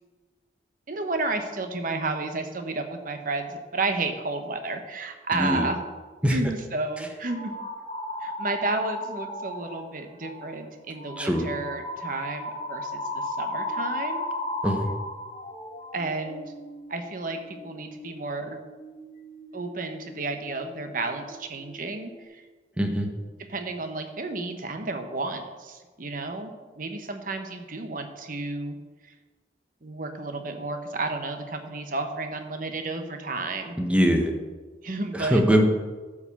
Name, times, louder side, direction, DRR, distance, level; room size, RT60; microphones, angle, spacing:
voice 1, 0.9-5.8 6.3-7.5 8.2-14.3 15.9-16.5 16.9-18.6 19.5-22.4 23.5-28.8 29.0-29.1 29.8-33.7 34.8-35.6, right 3 dB, 50° right, 6 dB, 1.0 m, -32 dB
voice 2, 5.3-5.7 6.2-6.4 11.2-11.5 14.6-14.9 22.8-23.1 33.8-34.3 35.1-35.6, equal, 5° right, 3 dB, 1.0 m, -22 dB
sound 1, 7.3-9.9 10.2-10.5 11.0-21.3 21.5-22.2, left 1 dB, 30° left, 0.8 m, -36 dB
10.5 x 4.9 x 7.0 m, 1.4 s
head